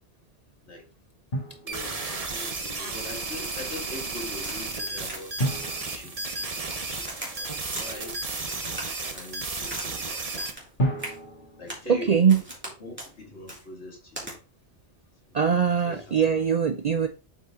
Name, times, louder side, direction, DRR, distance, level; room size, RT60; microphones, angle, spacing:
Drum, 1.3-2.4 5.4-7.2 10.8-12.8, right 1 dB, 45° left, 1.8 m, -33 dB
voice 1, 1.6-5.4 5.9-8.2 9.1-10.2 11.6-12.4 12.8-14.4 15.3-16.1, left 2 dB, 70° left, 2.3 m, -42 dB
sound 1, 1.7-10.5, right 3 dB, 35° right, 1.0 m, -33 dB
Crack, 3.4-4.0 4.4-4.7 5.1-5.4 5.8-6.8 7.1-7.9 8.4-9.9 10.1-10.7 11.0-11.2 11.7-11.9 12.3-12.7 13.0-13.1 13.5-13.6 14.2-14.3, right 1 dB, 10° right, 2.5 m, -40 dB
voice 2, 11.9-12.4 15.3-17.1, right 7 dB, 55° right, 0.5 m, -22 dB
7.3 x 4.2 x 3.7 m
omnidirectional pair, 1.2 m